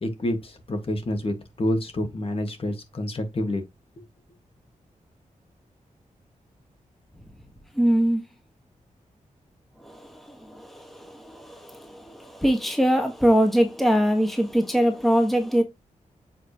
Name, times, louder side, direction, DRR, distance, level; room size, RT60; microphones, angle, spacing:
voice 1, 0.0-3.6, left 1 dB, 45° left, 1.7 m, -28 dB
voice 2, 7.8-8.2 9.8-15.6, equal, ahead, 1.3 m, -23 dB
7.6 x 4.8 x 2.9 m
wide cardioid pair, 155°, 14 cm